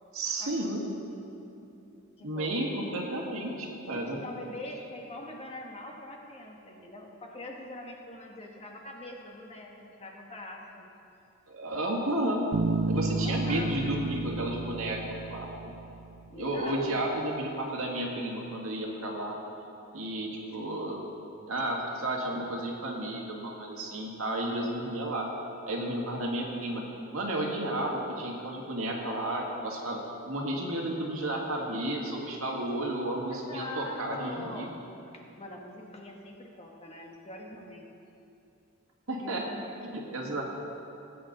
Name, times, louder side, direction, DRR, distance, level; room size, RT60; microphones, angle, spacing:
voice 1, 0.1-0.8 2.2-4.2 11.5-12.4 12.9-15.7 16.4-19.4 19.9-21.0 21.5-25.3 25.7-26.8 27.1-34.7 39.1-39.4 39.9-40.4, right 1 dB, 85° right, -1 dB, 1.9 m, -32 dB
voice 2, 2.2-2.5 3.9-10.9 13.0-14.1 16.3-17.0 33.3-34.7 35.1-37.9 39.2-39.8 40.1-40.4, left 1 dB, 30° left, 0 dB, 1.3 m, -43 dB
Bass guitar, 12.5-16.2, right 3 dB, 65° right, 0.5 m, -32 dB
18.0 x 8.7 x 3.9 m, 2.8 s
head